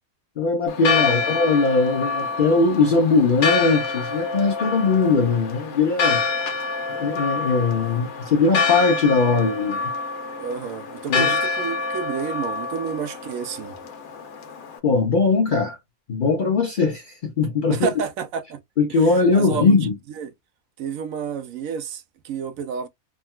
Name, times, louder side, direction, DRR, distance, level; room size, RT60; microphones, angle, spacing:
voice 1, 0.4-6.2 6.9-9.9 11.1-11.3 14.8-15.8 16.1-17.9 18.8-19.9, left 4 dB, 55° left, 0.6 m, -20 dB
Church bell, 0.7-14.8, left 4 dB, 80° left, 1.2 m, -27 dB
voice 2, 10.4-13.7 17.7-18.6 18.9-19.8 20.2-20.3 20.8-22.9, right 7 dB, 75° right, 1.0 m, -30 dB
3.6 x 2.2 x 2.2 m
omnidirectional pair, 1.5 m